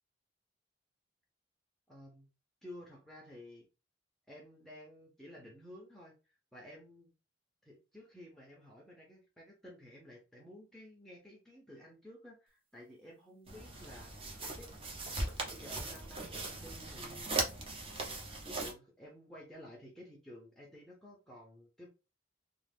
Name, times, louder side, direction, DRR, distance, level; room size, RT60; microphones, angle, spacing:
voice 1, 1.9-2.3 2.6-3.7 4.3-7.1 7.6-14.1 14.6-14.7 15.4-17.5 18.5-21.9, left 1 dB, ahead, -2 dB, 0.6 m, -53 dB
sound 1, 13.5-18.7, right 2 dB, 30° right, 0.7 m, -39 dB
2.5 x 2.4 x 3.4 m, 0.30 s
head